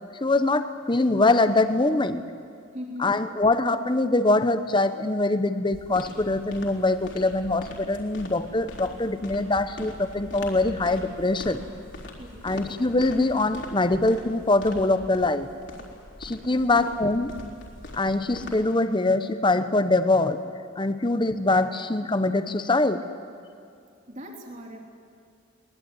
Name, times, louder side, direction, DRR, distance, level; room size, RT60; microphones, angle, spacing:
voice 1, 0.2-2.2 3.0-11.6 12.4-15.5 16.2-17.3 17.9-20.4 20.8-23.0, left 2 dB, 25° left, 11 dB, 0.9 m, -23 dB
voice 2, 2.7-3.2 12.2-12.7 16.4-16.9 24.1-24.8, left 1 dB, 40° right, 1 dB, 3.4 m, -40 dB
sound 1, 5.7-18.7, left 1 dB, 60° left, 4.0 m, -42 dB
23.5 x 20.0 x 9.8 m, 2.4 s
head